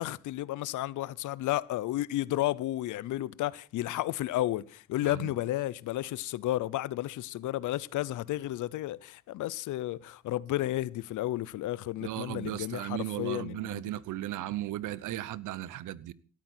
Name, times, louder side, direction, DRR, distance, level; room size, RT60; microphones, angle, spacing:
voice 1, 0.0-13.9, left 15 dB, 80° left, 0.7 m, -32 dB
voice 2, 12.0-16.1, right 14 dB, 85° right, 0.9 m, -36 dB
17.5 x 13.0 x 4.4 m
cardioid pair, 90°, 30 cm